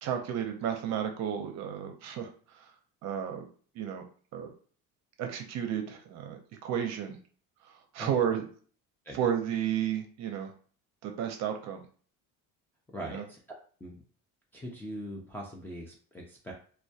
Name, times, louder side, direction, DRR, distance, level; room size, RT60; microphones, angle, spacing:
voice 1, 0.0-2.7 3.0-3.4 3.7-4.0 4.3-4.5 5.2-7.2 7.6-8.4 9.2-10.5 11.0-11.8 13.0-13.2, right 9 dB, 55° right, 5 dB, 0.6 m, -32 dB
voice 2, 12.9-13.4 13.8-14.0 14.5-16.5, equal, 5° left, -4 dB, 0.3 m, -41 dB
2.2 x 2.2 x 2.6 m, 0.43 s
cardioid pair, 145°, 33 cm